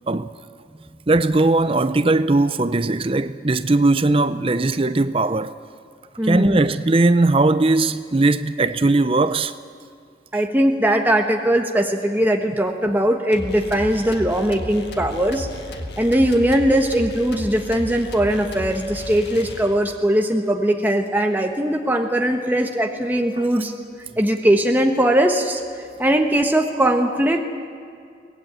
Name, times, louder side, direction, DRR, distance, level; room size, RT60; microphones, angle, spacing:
voice 1, 1.1-5.5 6.2-9.5, right 2 dB, 30° right, 0.5 m, -19 dB
voice 2, 6.2-6.6 10.3-15.5 16.0-23.7 24.2-25.6 26.0-27.4, right 1 dB, 10° right, 1.2 m, -20 dB
sound 1, 13.3-20.0, left 1 dB, 60° left, 1.9 m, -34 dB
24.0 x 18.5 x 8.9 m
head